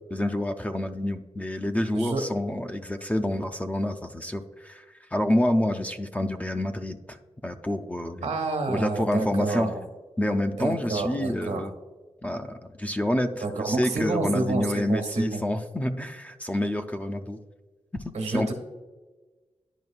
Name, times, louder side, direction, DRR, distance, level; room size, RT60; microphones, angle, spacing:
voice 1, 0.1-4.8 5.1-7.2 7.4-8.3 8.7-9.7 10.2-11.7 12.2-17.4 17.9-18.5, left 1 dB, 10° left, 6 dB, 0.4 m, -28 dB
voice 2, 8.2-9.8 10.5-11.6 13.4-15.4 18.1-18.5, right 3 dB, 85° right, 3 dB, 1.2 m, -29 dB
11.0 x 5.1 x 2.4 m, 1.3 s
wide cardioid pair, 130°, 11 cm